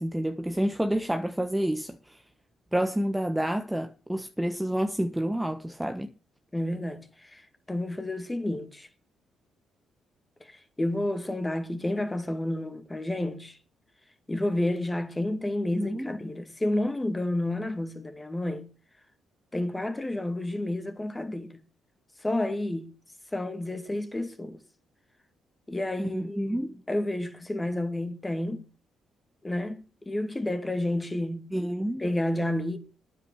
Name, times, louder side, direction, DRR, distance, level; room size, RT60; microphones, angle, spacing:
voice 1, 0.0-2.2 2.7-6.1 15.7-16.1 26.0-26.8 31.5-32.0, right 1 dB, 5° right, 1.2 m, -29 dB
voice 2, 6.5-7.4 7.7-8.9 10.4-13.6 14.3-18.7 19.5-21.6 22.2-22.9 23.3-24.6 25.7-28.7 29.4-31.5 32.0-32.8, left 1 dB, 15° left, 2.2 m, -30 dB
9.6 x 8.4 x 7.9 m
cardioid pair, 90°, 0 cm